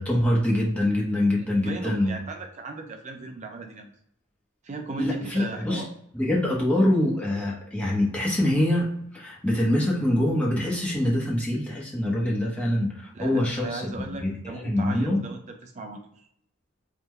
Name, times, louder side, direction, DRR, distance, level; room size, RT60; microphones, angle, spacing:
voice 1, 0.0-2.2 5.0-5.8 6.1-8.9 9.1-13.9 14.2-15.2, left 1 dB, 5° left, -4 dB, 0.7 m, -24 dB
voice 2, 1.6-3.9 4.6-5.9 13.1-16.0, right 3 dB, 30° right, 4 dB, 0.4 m, -37 dB
3.5 x 2.2 x 3.1 m, 0.71 s
head